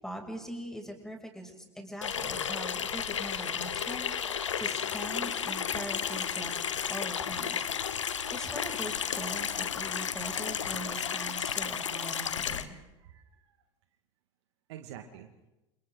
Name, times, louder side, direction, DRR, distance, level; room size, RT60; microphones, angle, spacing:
voice 1, 0.0-6.5 6.9-7.7 8.0-12.8, right 1 dB, 5° left, 2 dB, 6.9 m, -42 dB
Water tap faucet / Sink (filling or washing), 2.0-12.6, left 8 dB, 80° left, 1.2 m, -33 dB
voice 2, 12.0-13.6 14.7-15.3, right 10 dB, 65° right, 5 dB, 2.1 m, -50 dB
29.5 x 29.5 x 4.0 m, 0.98 s
figure-of-eight pair, 75°, 15 cm